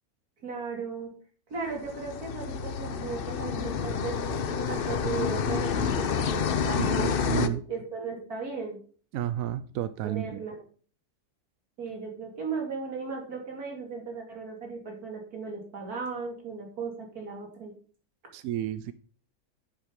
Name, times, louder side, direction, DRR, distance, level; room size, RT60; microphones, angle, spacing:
voice 1, 0.4-1.1 1.5-4.4 4.7-8.8 10.0-10.6 11.8-17.7, right 4 dB, 90° right, 1 dB, 2.9 m, -36 dB
sound 1, 1.7-7.5, left 6 dB, 50° left, 0.7 m, -29 dB
voice 2, 6.8-7.6 9.1-10.4 18.3-18.9, right 12 dB, 75° right, 13 dB, 0.9 m, -31 dB
9.9 x 5.9 x 5.2 m, 0.43 s
omnidirectional pair, 1.5 m